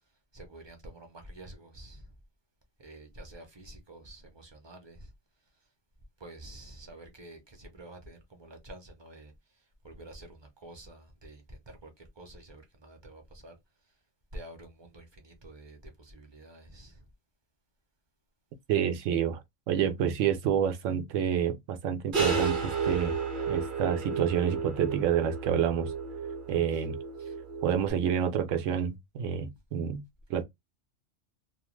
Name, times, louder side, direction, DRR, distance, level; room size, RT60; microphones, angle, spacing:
voice 1, 0.3-2.1 2.8-5.1 6.2-13.6 14.3-17.1 26.7-26.8 27.2-27.3, right 1 dB, 30° right, 0.5 m, -49 dB
voice 2, 18.7-19.4 19.7-23.2 23.5-25.9 26.5-27.0 27.6-30.0 30.3-30.4, right 8 dB, 85° right, 0.9 m, -28 dB
sound 1, 22.1-27.9, right 5 dB, 50° right, 0.8 m, -32 dB
2.4 x 2.2 x 3.0 m
omnidirectional pair, 1.3 m